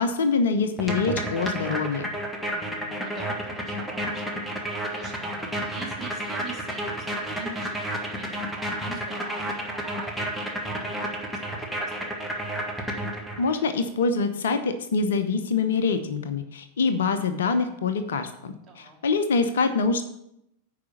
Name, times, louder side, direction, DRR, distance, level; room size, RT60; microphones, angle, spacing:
voice 1, 0.0-2.1 13.4-20.0, left 4 dB, 60° left, 10 dB, 0.8 m, -25 dB
sound 1, 0.8-13.6, right 1 dB, ahead, 1.6 m, -31 dB
voice 2, 2.4-4.4 4.9-12.1 18.7-19.0, right 4 dB, 20° right, -2 dB, 2.7 m, -43 dB
9.5 x 5.0 x 7.1 m, 0.79 s
figure-of-eight pair, 90°, 0 cm